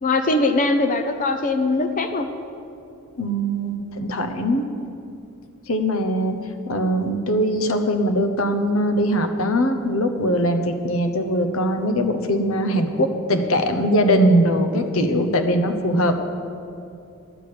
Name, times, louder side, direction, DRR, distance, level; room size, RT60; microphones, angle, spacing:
voice 1, 0.0-2.3 15.1-15.3, left 2 dB, 40° left, 7 dB, 0.6 m, -21 dB
voice 2, 3.2-4.7 5.7-6.4 6.7-16.2, equal, 80° left, 7 dB, 0.9 m, -21 dB
11.0 x 6.7 x 8.6 m, 2.6 s
head